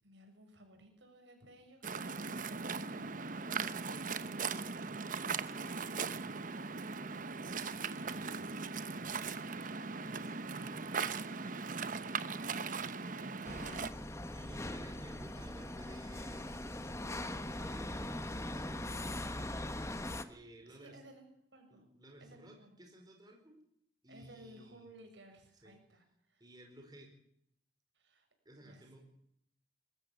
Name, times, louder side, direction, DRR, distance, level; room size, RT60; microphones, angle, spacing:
voice 1, 0.0-4.9 5.5-6.8 20.6-21.9 22.2-22.8 24.1-26.4 27.9-28.3 28.6-29.0, right 1 dB, 80° right, 4 dB, 6.8 m, -59 dB
Waves surf, 1.8-13.9, right 5 dB, 45° right, 1.0 m, -39 dB
voice 2, 8.0-8.8 9.9-14.0 14.3-19.7 20.3-21.0 21.7-23.6 24.0-24.9 25.6-25.7 26.4-27.1 28.4-29.0, right 1 dB, 20° right, 2 dB, 4.7 m, -56 dB
sound 1, 13.4-20.2, left 1 dB, 15° left, 1.2 m, -41 dB
21.5 x 15.0 x 8.6 m, 0.72 s
head